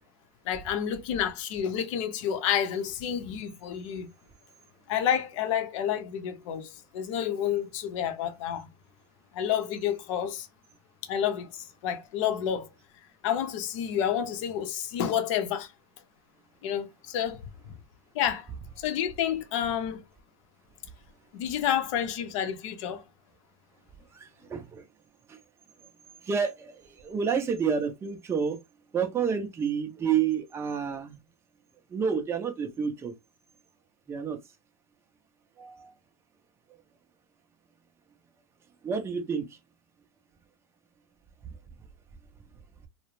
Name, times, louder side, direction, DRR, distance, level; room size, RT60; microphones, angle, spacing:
voice 1, 0.4-4.1 4.9-8.7 9.3-10.5 11.0-12.7 13.2-15.7 16.6-17.7 18.1-18.5 18.8-20.0 21.3-23.0, left 9 dB, 60° left, 0.6 m, -29 dB
voice 2, 24.1-24.8 26.2-28.6 28.9-31.2 31.9-33.1 34.1-34.4 35.6-35.9 38.8-39.5, right 6 dB, 15° right, 0.5 m, -29 dB
2.3 x 2.1 x 3.1 m
hypercardioid pair, 125°, 18 cm